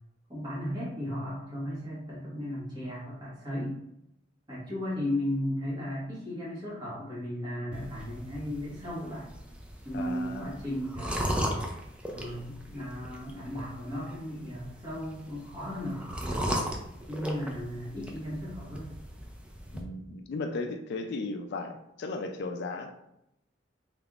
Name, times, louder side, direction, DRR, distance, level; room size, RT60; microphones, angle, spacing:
voice 1, 0.3-3.8 4.5-9.3 9.8-11.6 12.1-16.6 17.1-18.9, equal, 25° right, -7 dB, 1.5 m, -35 dB
sound 1, 7.7-19.8, equal, 5° right, 0.4 m, -37 dB
voice 2, 9.9-10.5 19.7-22.9, left 3 dB, 60° left, 5 dB, 0.3 m, -36 dB
3.5 x 3.3 x 2.4 m, 0.81 s
head